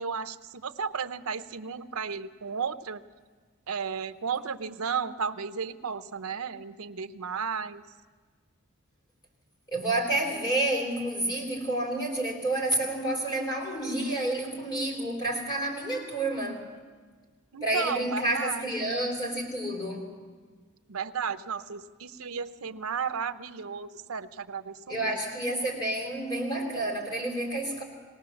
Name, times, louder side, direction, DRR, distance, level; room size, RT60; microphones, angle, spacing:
voice 1, 0.0-3.0 3.7-7.8 17.5-19.0 20.9-25.2, right 6 dB, 75° right, 11 dB, 0.7 m, -34 dB
voice 2, 9.7-16.7 17.6-20.1 24.9-27.8, right 1 dB, 20° left, 1 dB, 3.9 m, -29 dB
20.5 x 18.5 x 7.1 m, 1.5 s
head